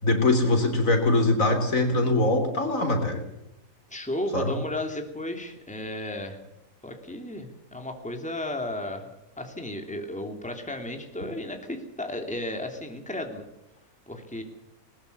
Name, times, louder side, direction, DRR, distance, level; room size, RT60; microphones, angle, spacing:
voice 1, 0.0-3.2 4.3-4.5, left 2 dB, 65° left, 6 dB, 3.9 m, -22 dB
voice 2, 3.9-6.4 6.8-9.1 9.4-13.4 14.1-14.4, left 1 dB, 5° left, 4 dB, 2.9 m, -34 dB
20.5 x 20.5 x 6.8 m, 0.93 s
omnidirectional pair, 1.5 m